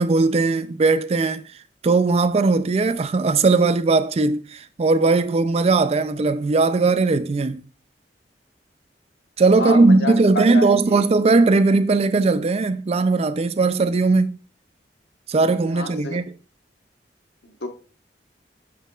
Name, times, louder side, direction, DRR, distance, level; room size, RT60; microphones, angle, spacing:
voice 1, 0.0-1.4 1.8-7.6 9.4-14.3 15.3-16.2, right 3 dB, 35° right, 0.4 m, -18 dB
voice 2, 9.6-11.0 15.7-16.2 17.4-17.7, left 2 dB, 75° left, 1.2 m, -29 dB
7.6 x 5.5 x 2.4 m
head